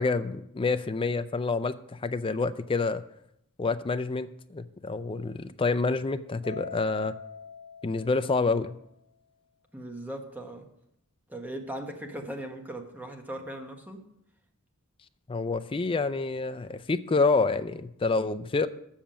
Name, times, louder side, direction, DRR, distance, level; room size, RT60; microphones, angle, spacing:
voice 1, 0.0-3.0 3.6-7.1 7.8-8.8 15.3-18.7, left 3 dB, 25° left, 12 dB, 0.4 m, -28 dB
Mallet percussion, 6.4-8.9, left 6 dB, 45° left, 1.0 m, -44 dB
voice 2, 9.7-10.7 11.3-14.0, right 1 dB, 10° right, 4 dB, 1.2 m, -38 dB
7.2 x 7.1 x 7.5 m, 0.79 s
head